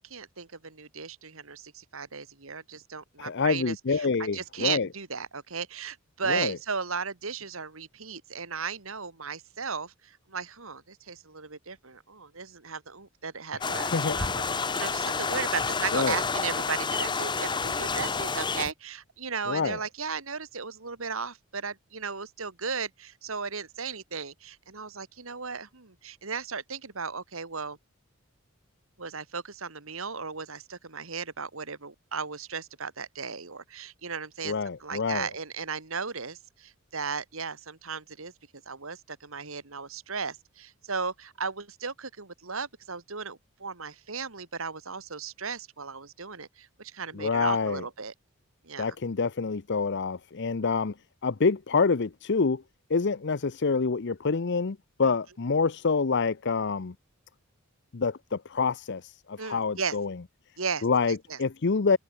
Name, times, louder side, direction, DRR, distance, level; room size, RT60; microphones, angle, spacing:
voice 1, 0.0-27.8 29.0-34.5 34.8-38.3 38.7-48.1 48.6-49.0 59.4-60.0 60.6-60.9 61.3-61.4, right 5 dB, 70° right, 2.2 m, -36 dB
voice 2, 3.2-4.9 6.3-6.6 13.7-14.2 15.9-16.2 19.5-19.8 34.4-35.3 47.1-47.8 48.8-50.9 51.2-52.6 52.9-56.9 57.9-60.1 60.8-62.0, left 4 dB, 55° left, 0.7 m, -27 dB
sound 1, 13.6-18.7, left 4 dB, 20° left, 0.7 m, -29 dB
head